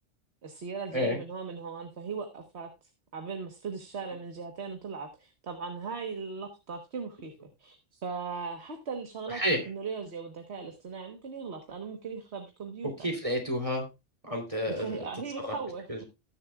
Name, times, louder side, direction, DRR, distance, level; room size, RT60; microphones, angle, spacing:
voice 1, 0.4-2.7 3.1-7.3 7.6-13.1 14.8-16.0, right 5 dB, 70° right, 6 dB, 1.6 m, -38 dB
voice 2, 9.3-9.7 13.0-13.8 14.2-15.1 15.4-15.5 15.9-16.0, equal, 30° right, 2 dB, 3.2 m, -30 dB
19.5 x 7.1 x 2.3 m, 0.25 s
omnidirectional pair, 1.2 m